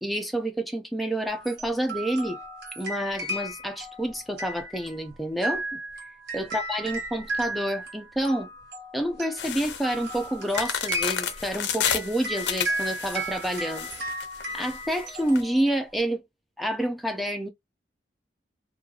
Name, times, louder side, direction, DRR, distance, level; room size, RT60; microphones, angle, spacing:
voice 1, 0.0-2.4 2.8-5.8 6.3-8.5 8.9-13.9 14.5-16.2 16.6-17.5, right 1 dB, ahead, 0.4 m, -28 dB
sound 1, 1.3-16.0, right 1 dB, 65° right, 1.0 m, -35 dB
sound 2, 9.4-15.4, left 8 dB, 65° left, 0.5 m, -31 dB
3.0 x 2.4 x 2.3 m
head